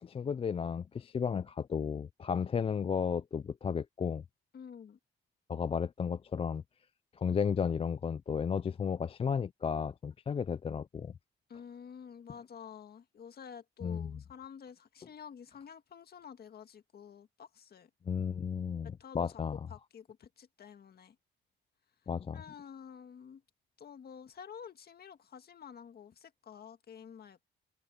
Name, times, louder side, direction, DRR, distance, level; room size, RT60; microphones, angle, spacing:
voice 1, 0.0-4.2 5.5-6.6 7.2-11.1 13.8-14.1 18.1-19.6 22.1-22.4, left 6 dB, 30° left, 0.4 m, -33 dB
voice 2, 4.5-5.0 11.5-17.9 18.8-21.2 22.3-23.4 23.8-27.4, left 7 dB, 50° left, 1.9 m, -50 dB
cardioid pair, 90°, 20 cm